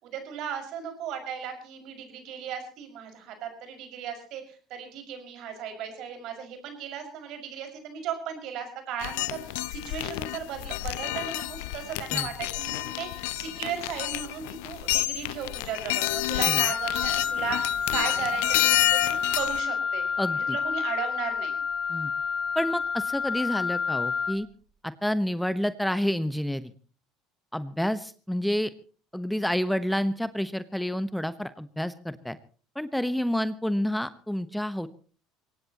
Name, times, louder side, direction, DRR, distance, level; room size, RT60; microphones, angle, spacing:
voice 1, 0.0-20.0 20.5-21.6, right 8 dB, 60° right, 5 dB, 5.9 m, -36 dB
sound 1, 9.0-19.6, left 21 dB, 75° left, 0.7 m, -29 dB
Wind instrument woodwind instrument, 16.7-24.4, left 6 dB, 40° left, 6.7 m, -29 dB
voice 2, 20.2-20.6 21.9-22.1 22.5-24.5 24.8-26.7 27.5-28.7 29.1-32.4 32.7-34.9, equal, 5° left, 13 dB, 1.1 m, -29 dB
23.5 x 18.5 x 3.0 m, 0.40 s
hypercardioid pair, 70°, 0 cm